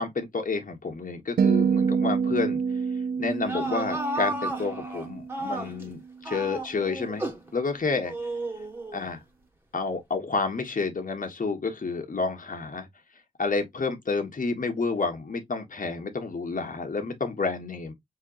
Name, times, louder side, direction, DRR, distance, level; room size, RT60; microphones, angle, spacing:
voice 1, 0.0-2.6 3.2-7.3 7.5-8.1 8.9-9.2 9.7-12.9 13.4-17.9, left 4 dB, 60° left, 1.4 m, -30 dB
sound 1, 1.4-5.7, right 6 dB, 75° right, 0.4 m, -27 dB
sound 2, 3.3-5.9 6.2-7.5 8.1-9.1, right 1 dB, 15° right, 1.5 m, -33 dB
5.5 x 2.9 x 2.6 m
cardioid pair, 50°, 16 cm